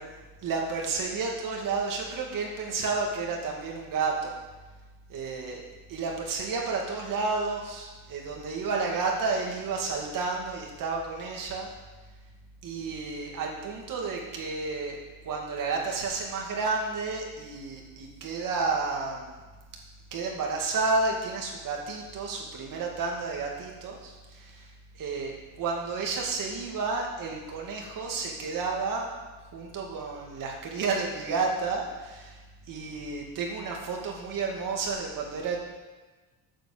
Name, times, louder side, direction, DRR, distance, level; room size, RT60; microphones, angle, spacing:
voice 1, 0.4-4.3 5.1-5.6 5.9-11.7 12.6-19.3 20.1-24.7 24.9-29.1 29.5-32.4 32.7-35.6, right 4 dB, 50° right, 0 dB, 2.3 m, -31 dB
8.9 x 7.3 x 7.2 m, 1.3 s
cardioid pair, 160°, 41 cm